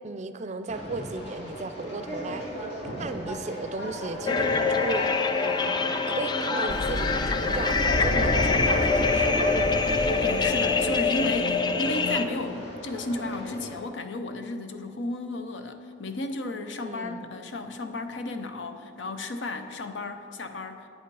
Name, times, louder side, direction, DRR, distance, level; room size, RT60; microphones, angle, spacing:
voice 1, 0.0-2.5 3.0-5.1 6.1-9.8 16.8-17.3, right 3 dB, 40° right, 10 dB, 0.4 m, -35 dB
Conversation, 0.7-13.7, equal, 65° left, 2.8 m, -37 dB
sound 1, 4.3-12.3, left 4 dB, 25° left, 0.3 m, -25 dB
Thunder, 6.7-11.5, left 1 dB, 50° left, 0.7 m, -30 dB
voice 2, 10.2-20.9, left 2 dB, 85° left, 7 dB, 0.7 m, -34 dB
9.7 x 8.5 x 4.8 m, 2.5 s
head